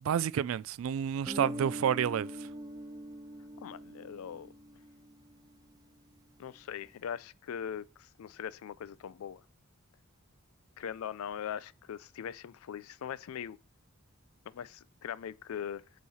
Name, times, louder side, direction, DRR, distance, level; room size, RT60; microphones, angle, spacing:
voice 1, 0.0-2.3, right 8 dB, 70° right, 0.3 m, -29 dB
Guitar, 1.3-5.8, equal, 20° right, 0.6 m, -43 dB
voice 2, 3.6-4.5 6.4-9.4 10.8-13.6 14.5-15.8, left 8 dB, 90° left, 0.4 m, -41 dB
8.3 x 3.1 x 4.1 m
head